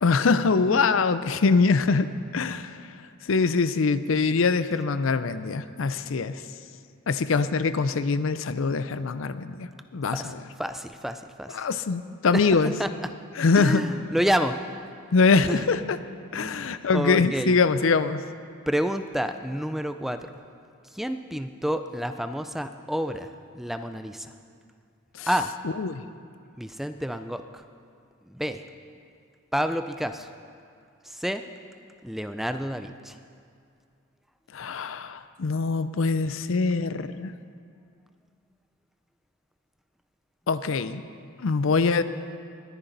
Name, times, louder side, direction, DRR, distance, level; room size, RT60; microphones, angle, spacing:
voice 1, 0.0-2.8 3.2-6.4 7.1-10.4 11.5-12.7 13.4-13.9 15.1-16.0 16.3-18.2 25.2-25.3 25.8-26.0 34.5-37.3 40.5-41.0 41.4-42.0, left 4 dB, 65° left, 13 dB, 0.5 m, -23 dB
voice 2, 10.6-11.7 12.3-13.1 13.5-14.6 15.5-15.7 16.4-17.6 18.7-20.2 20.9-24.3 25.3-25.5 26.6-27.6 28.3-28.6 29.5-30.3 31.1-31.4 32.0-33.2, equal, ahead, 9 dB, 0.4 m, -29 dB
20.5 x 10.0 x 4.0 m, 2.3 s
head